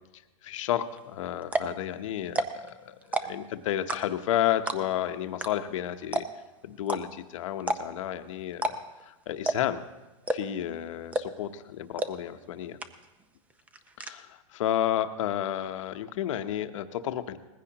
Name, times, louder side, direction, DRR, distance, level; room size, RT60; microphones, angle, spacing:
voice 1, 0.4-6.3 6.6-8.8 9.0-9.8 10.3-12.8 14.0-17.4, left 11 dB, 65° left, 9 dB, 0.9 m, -31 dB
sound 1, 1.0-1.1 1.4-1.8 2.2-2.7 3.0-3.5 3.9-4.3 4.7-5.0 5.4-5.5 5.7-5.8 6.1-6.5 6.9-7.0 7.6-8.0 8.5-9.0 9.4-9.8 10.2-10.6 11.1-11.5 12.0-12.1 12.4-12.5 12.8-13.2 13.5-14.1, right 2 dB, 10° right, 0.5 m, -29 dB
19.5 x 15.5 x 2.9 m, 1.1 s
hypercardioid pair, 145°, 18 cm